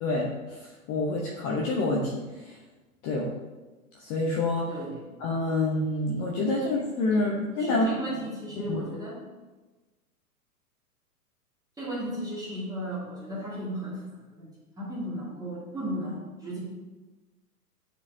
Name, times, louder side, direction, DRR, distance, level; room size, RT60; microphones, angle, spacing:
voice 1, 0.0-2.6 3.0-3.3 4.0-4.7 5.2-7.9 8.7-8.8, left 2 dB, 30° left, -2 dB, 0.8 m, -27 dB
voice 2, 4.7-5.2 7.1-7.3 7.6-9.3 11.8-14.5 14.8-16.6, equal, 10° right, -7 dB, 1.9 m, -35 dB
9.4 x 4.5 x 2.7 m, 1.2 s
figure-of-eight pair, 110°, 45 cm